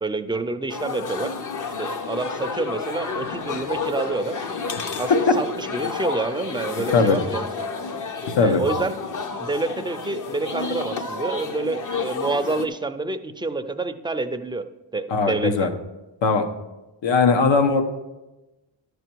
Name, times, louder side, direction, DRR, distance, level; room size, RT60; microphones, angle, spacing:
voice 1, 0.0-1.3 1.8-4.4 5.0-7.7 8.4-9.0 9.4-14.6 14.9-15.7, right 3 dB, 10° right, 7 dB, 0.4 m, -28 dB
sound 1, 0.7-12.7, left 4 dB, 45° left, 0.8 m, -30 dB
voice 2, 15.1-15.7 16.2-16.5 17.0-17.8, left 4 dB, 80° left, 7 dB, 1.1 m, -19 dB
11.0 x 6.9 x 4.5 m, 1.0 s
wide cardioid pair, 120°, 44 cm